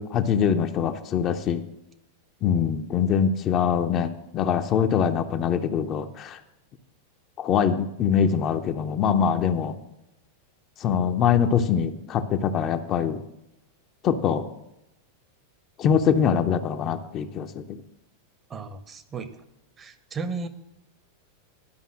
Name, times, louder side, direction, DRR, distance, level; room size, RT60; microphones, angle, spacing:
voice 1, 0.0-1.6 2.4-6.4 7.4-9.7 10.8-13.2 14.0-14.5 15.8-17.8, left 7 dB, 35° left, 7 dB, 0.6 m, -23 dB
voice 2, 18.5-19.3 19.8-20.5, right 4 dB, 20° right, 11 dB, 0.8 m, -34 dB
11.5 x 5.4 x 7.3 m, 0.90 s
figure-of-eight pair, 90°, 0 cm